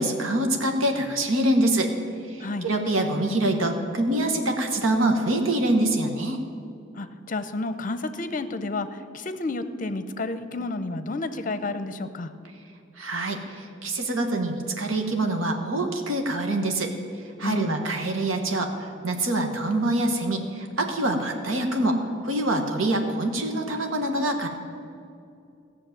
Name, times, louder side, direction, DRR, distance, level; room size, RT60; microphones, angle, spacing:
voice 1, 0.0-1.9 2.2-6.4 13.0-16.9 17.2-24.5, right 1 dB, 85° right, 4 dB, 1.3 m, -25 dB
voice 2, 6.9-12.3 17.4-17.8, left 2 dB, 40° left, 11 dB, 0.7 m, -31 dB
14.5 x 6.5 x 9.1 m, 2.5 s
head